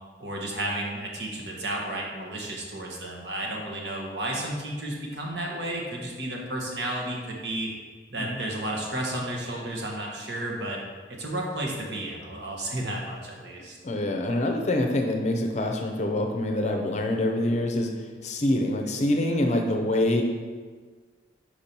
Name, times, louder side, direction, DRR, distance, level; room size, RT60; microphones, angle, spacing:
voice 1, 0.2-7.7 8.1-10.8 11.1-13.8, right 1 dB, 70° right, -1 dB, 1.2 m, -32 dB
voice 2, 13.8-17.9 18.2-20.2, left 1 dB, 40° left, 3 dB, 0.6 m, -25 dB
4.8 x 4.4 x 5.3 m, 1.5 s
head